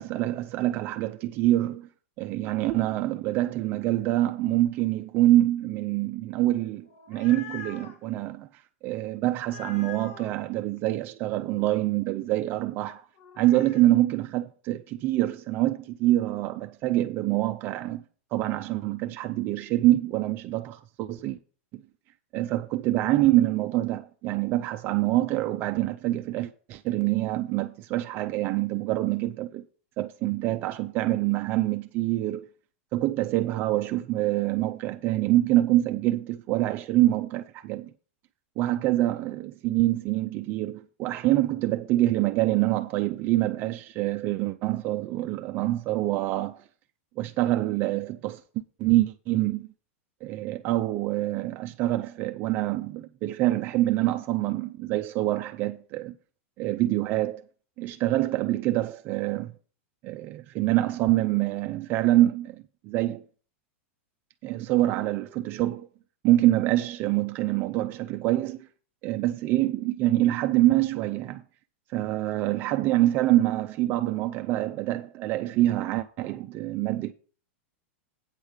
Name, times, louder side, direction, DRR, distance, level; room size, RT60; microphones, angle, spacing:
voice 1, 0.0-1.9 2.2-13.0 13.4-18.0 18.3-21.4 21.7-21.8 22.3-29.6 30.0-32.5 32.9-37.9 38.6-46.6 47.2-48.4 48.8-49.7 50.2-56.2 56.6-57.4 57.8-59.5 60.0-63.2 64.4-65.9 66.2-68.7 69.0-71.4 71.9-77.1, right 15 dB, 30° right, 0.4 m, -25 dB
sound 1, 6.8-8.0 9.4-10.4 13.2-13.9, left 7 dB, 70° left, 2.0 m, -44 dB
8.9 x 5.0 x 7.3 m
supercardioid pair, 165°, 7 cm